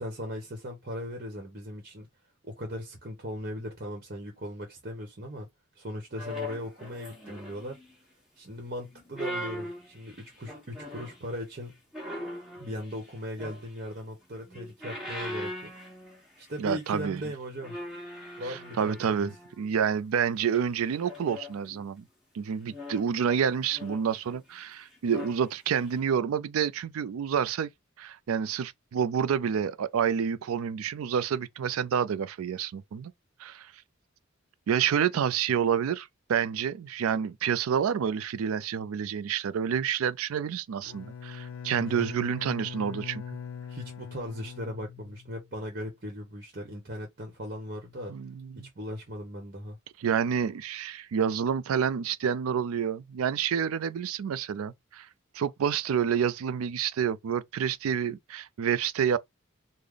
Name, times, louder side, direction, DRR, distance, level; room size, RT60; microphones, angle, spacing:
voice 1, 0.0-2.1 2.4-5.5 5.8-7.8 8.4-11.7 12.6-15.7 16.4-17.8 18.4-19.3 41.7-42.1 43.7-48.1 48.6-49.8, equal, 45° right, 1.0 m, -38 dB
sound 1, 6.2-7.9 8.9-11.2 11.9-14.0 14.4-16.5 16.8-17.0 17.6-19.7 20.5-21.8 22.6-24.6 24.9-25.4 25.9-26.0, left 1 dB, 5° right, 1.2 m, -41 dB
voice 2, 16.6-17.2 18.4-22.0 22.3-27.7 28.0-33.1 33.4-33.7 34.7-43.2 48.1-48.7 50.0-55.1 55.3-59.2, right 7 dB, 80° right, 0.4 m, -28 dB
Bowed string instrument, 40.8-45.6, left 7 dB, 65° left, 0.6 m, -41 dB
3.3 x 2.1 x 3.7 m
head